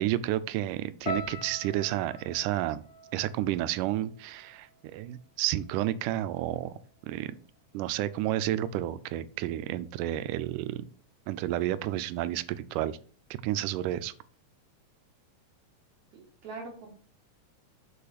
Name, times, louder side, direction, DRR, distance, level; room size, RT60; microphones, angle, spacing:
voice 1, 0.0-2.8 3.1-6.8 7.1-7.3 7.7-10.9 11.3-13.0 13.4-14.1, right 13 dB, 90° right, 14 dB, 2.1 m, -31 dB
sound 1, 1.1-5.3 5.5-6.3 6.9-7.1, left 1 dB, 85° left, 3.0 m, -43 dB
voice 2, 16.1-16.9, right 3 dB, 70° right, -1 dB, 2.5 m, -43 dB
6.9 x 4.7 x 5.0 m, 0.43 s
omnidirectional pair, 3.6 m